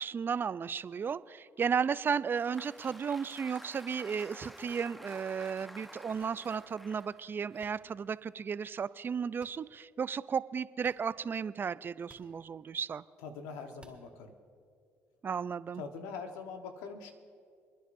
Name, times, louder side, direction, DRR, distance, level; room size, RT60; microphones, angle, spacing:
voice 1, 0.0-13.0 15.2-15.8, right 6 dB, 40° right, 17 dB, 0.4 m, -34 dB
Applause, 2.1-8.4, equal, ahead, 0.7 m, -51 dB
sound 1, 4.6-4.9 6.2-6.3 7.6-7.7 9.4-9.5 10.8-11.0 12.0-12.3 13.8-14.0, right 2 dB, 20° right, 2.6 m, -58 dB
voice 2, 13.2-14.3 15.8-17.1, left 5 dB, 85° left, 5 dB, 1.1 m, -43 dB
29.0 x 10.0 x 2.6 m, 2.3 s
supercardioid pair, 60°, 6 cm